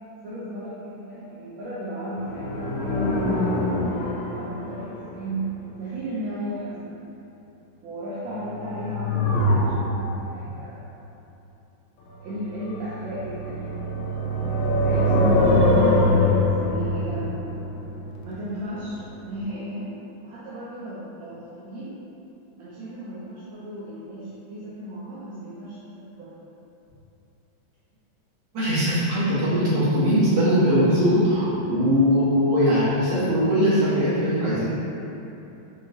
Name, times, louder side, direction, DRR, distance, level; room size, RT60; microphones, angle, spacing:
voice 1, 0.2-5.5 5.8-7.0 7.8-10.9 12.2-13.8 14.4-17.3 18.2-19.9 20.2-21.9 22.6-26.5, right 1 dB, 80° right, -10 dB, 1.5 m, -35 dB
sound 1, 2.2-5.3 8.6-10.3 12.7-18.7 19.0-19.1, left 1 dB, 80° left, 1.3 m, -23 dB
voice 2, 28.5-34.7, equal, 65° right, -12 dB, 2.2 m, -20 dB
5.6 x 2.8 x 2.7 m, 2.9 s
omnidirectional pair, 2.1 m